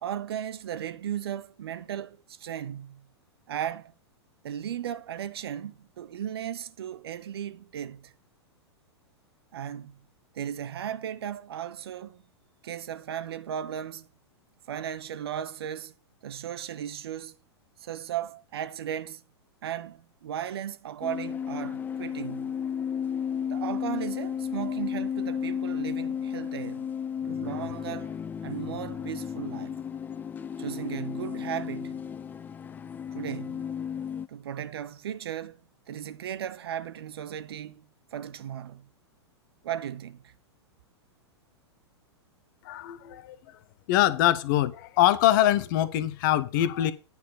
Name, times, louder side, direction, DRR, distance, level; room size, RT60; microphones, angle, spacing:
voice 1, 0.0-3.1 3.5-3.9 4.4-8.1 9.5-10.0 10.3-12.2 12.6-14.1 14.7-15.9 16.2-17.3 17.8-19.2 19.6-22.6 23.5-26.9 27.2-28.2 28.4-29.8 30.6-32.0 33.1-33.7 34.3-35.6 35.9-37.9 38.1-38.9 39.6-40.3, right 10 dB, 60° right, 0.7 m, -36 dB
sound 1, 21.0-34.3, left 8 dB, 15° left, 0.3 m, -33 dB
voice 2, 42.6-43.4 43.9-46.9, left 13 dB, 45° left, 0.9 m, -23 dB
9.6 x 4.3 x 6.7 m
figure-of-eight pair, 100°, 14 cm